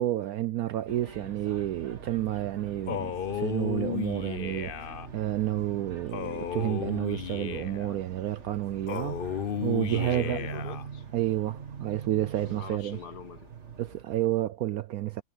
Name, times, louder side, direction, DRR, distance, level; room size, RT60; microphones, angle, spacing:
voice 1, 0.0-10.4 11.1-13.0 13.8-15.2, right 13 dB, 70° right, 0.9 m, -30 dB
sound 1, 0.6-13.1, right 2 dB, 90° right, 7.0 m, -68 dB
sound 2, 0.9-14.0, right 5 dB, 40° right, 2.4 m, -44 dB
Male speech man speaking, 2.9-5.1 6.1-7.9 8.9-10.9, left 9 dB, 90° left, 0.4 m, -34 dB
voice 2, 9.9-11.0 12.4-13.5, left 7 dB, 65° left, 1.8 m, -44 dB
omnidirectional pair, 1.9 m